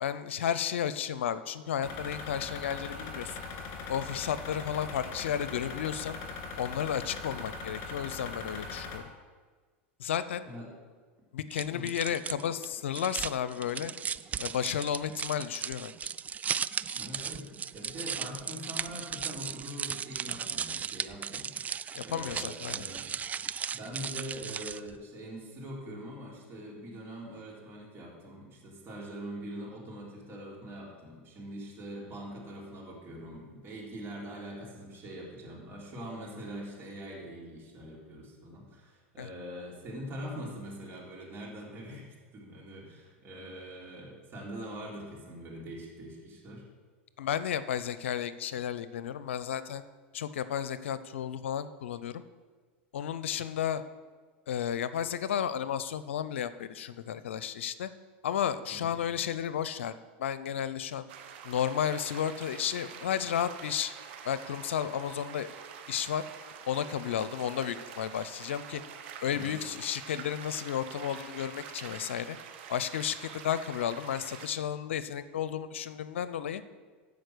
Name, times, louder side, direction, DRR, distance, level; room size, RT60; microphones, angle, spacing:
voice 1, 0.0-3.4 3.9-6.2 6.6-9.0 10.0-10.4 11.3-13.9 14.4-16.1 21.9-22.8 39.2-39.3 47.2-49.8 50.1-52.2 52.9-53.8 54.5-57.9 58.2-61.0 61.4-63.9 64.2-65.5 65.9-66.2 66.7-68.8 69.2-72.4 72.7-76.6, left 9 dB, 85° left, 14 dB, 0.5 m, -33 dB
sound 1, 1.8-9.0, left 4 dB, 50° left, 2.6 m, -40 dB
sound 2, 11.5-24.9, right 7 dB, 25° right, 0.3 m, -36 dB
voice 2, 16.9-17.5 17.7-23.1 23.7-46.6 58.7-58.9 69.3-69.6, equal, 40° right, -2 dB, 3.8 m, -43 dB
sound 3, 61.1-74.5, right 8 dB, 70° right, 1.3 m, -46 dB
15.0 x 5.1 x 6.3 m, 1.5 s
hypercardioid pair, 100°, 6 cm